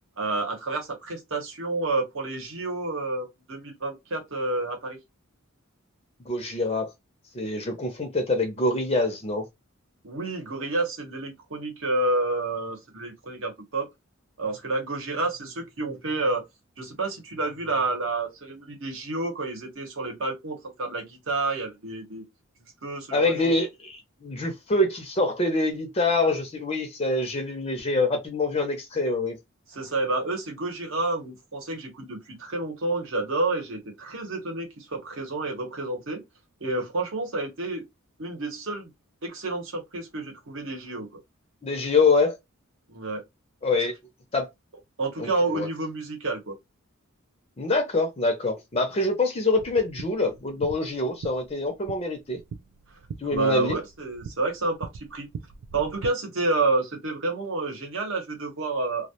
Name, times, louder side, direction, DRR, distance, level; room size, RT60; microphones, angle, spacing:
voice 1, 0.2-5.0 10.0-13.9 14.4-16.4 16.8-22.2 22.8-23.5 29.7-36.2 36.6-37.8 38.2-38.9 39.2-41.1 42.9-43.2 45.0-46.5 53.2-55.3 55.7-59.1, right 2 dB, 65° right, 0.9 m, -29 dB
voice 2, 6.2-6.9 7.3-9.4 23.1-29.4 41.6-42.4 43.6-43.9 44.3-44.5 45.2-45.3 45.5-45.7 47.6-52.4 53.2-53.8, left 2 dB, 30° left, 0.4 m, -25 dB
sound 1, 49.6-56.1, right 5 dB, 90° right, 0.4 m, -41 dB
2.2 x 2.1 x 2.7 m
head